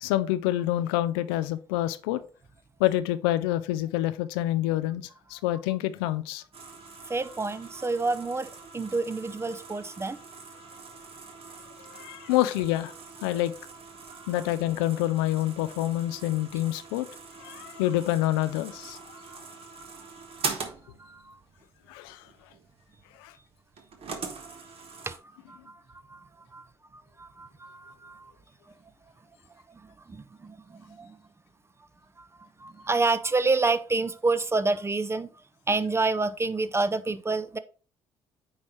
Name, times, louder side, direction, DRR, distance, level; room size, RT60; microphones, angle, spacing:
voice 1, 0.0-2.2 2.8-6.4 11.8-12.9 13.2-13.5 14.3-17.1 17.4-19.0 21.9-22.3 23.2-23.3, left 14 dB, 80° left, 0.4 m, -27 dB
sound 1, 6.5-25.2, right 4 dB, 50° right, 1.2 m, -42 dB
voice 2, 7.0-10.2 12.1-12.2 14.1-14.3 19.1-19.4 19.8-19.9 20.4-20.7 21.0-21.4 24.3-24.6 25.1-26.7 26.9-28.3 29.7-31.2 32.2-32.3 32.6-35.3 35.7-37.6, right 3 dB, 20° right, 0.6 m, -29 dB
8.7 x 4.2 x 3.1 m
hypercardioid pair, 55°, 12 cm